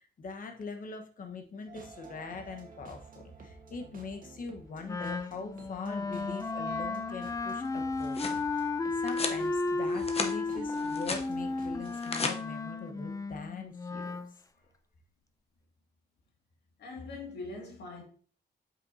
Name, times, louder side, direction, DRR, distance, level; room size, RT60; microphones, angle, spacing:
voice 1, 0.0-14.2, left 4 dB, 50° left, 1.2 m, -42 dB
sound 1, 1.7-12.0, right 4 dB, 50° right, 1.4 m, -51 dB
Wind instrument woodwind instrument, 4.9-14.3, left 3 dB, 20° left, 0.5 m, -34 dB
sound 2, 7.7-8.4 9.1-9.4 9.9-10.3 10.7-11.3 11.8-12.3, left 4 dB, 35° left, 0.9 m, -35 dB
voice 2, 16.8-18.0, left 3 dB, 75° left, 2.2 m, -42 dB
7.9 x 5.9 x 2.8 m
wide cardioid pair, 130°, 18 cm